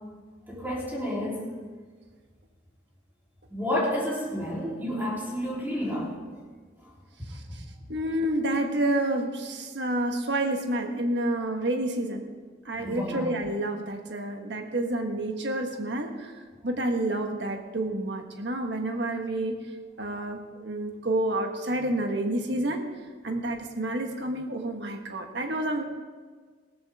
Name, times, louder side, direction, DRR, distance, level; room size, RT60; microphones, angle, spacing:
voice 1, 0.5-1.5 3.5-6.1 12.8-13.2, left 1 dB, 10° right, -6 dB, 3.6 m, -30 dB
voice 2, 7.9-12.3 12.7-16.3 16.6-19.6 20.0-22.8 23.2-25.8, right 1 dB, 70° right, 4 dB, 1.5 m, -29 dB
17.5 x 14.0 x 3.6 m, 1.5 s
head